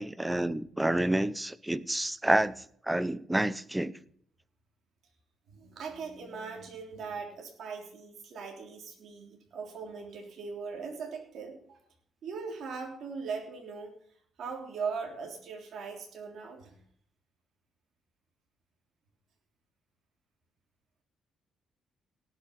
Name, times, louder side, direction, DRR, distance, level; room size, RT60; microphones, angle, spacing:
voice 1, 0.0-3.9, right 1 dB, 10° right, 17 dB, 0.7 m, -29 dB
voice 2, 5.5-11.8 12.2-13.9 14.4-16.8, right 5 dB, 65° right, 2 dB, 3.3 m, -40 dB
18.0 x 6.5 x 5.5 m, 0.63 s
cardioid pair, 90°, 0 cm